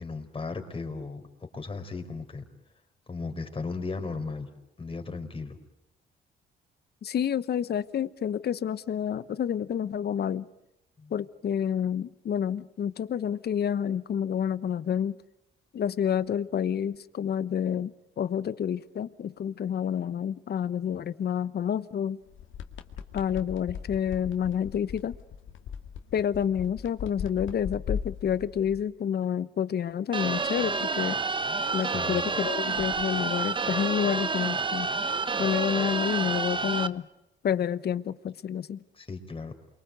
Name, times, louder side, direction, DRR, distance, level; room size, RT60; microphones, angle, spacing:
voice 1, 0.0-2.5 3.1-4.5 4.8-5.6 11.0-11.1 31.8-32.2 38.9-39.5, left 4 dB, 25° left, 5 dB, 4.4 m, -36 dB
voice 2, 7.0-10.5 11.1-15.2 15.7-22.2 23.1-25.1 26.1-31.2 31.7-34.9 35.4-37.0 37.4-38.8, left 8 dB, 55° left, 15 dB, 1.0 m, -29 dB
sound 1, 22.3-28.8 32.7-33.0, left 7 dB, 75° left, 2.2 m, -38 dB
sound 2, 30.1-36.9, right 4 dB, 25° right, 1.0 m, -29 dB
28.5 x 23.5 x 8.0 m, 0.90 s
cardioid pair, 90°, 20 cm